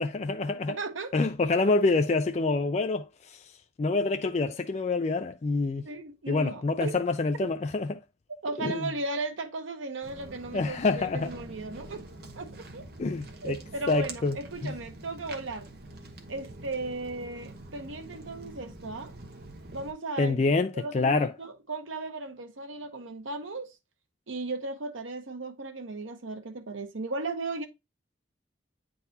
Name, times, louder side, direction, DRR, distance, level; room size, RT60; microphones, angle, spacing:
voice 1, 0.0-0.8 1.1-3.4 3.8-5.9 6.3-8.0 8.6-8.9 10.5-11.3 13.0-13.6 13.9-14.4 14.6-14.7 20.2-21.3, left 3 dB, 35° left, 0.3 m, -27 dB
voice 2, 0.7-1.1 5.8-7.0 7.4-7.5 8.4-12.0 12.4-12.9 13.4-15.7 16.3-19.1 19.7-20.4 20.7-23.7 24.3-27.7, right 3 dB, 85° right, 1.0 m, -36 dB
Walk footsteps, 10.0-19.9, right 2 dB, 55° right, 1.1 m, -45 dB
9.0 x 3.9 x 2.7 m
head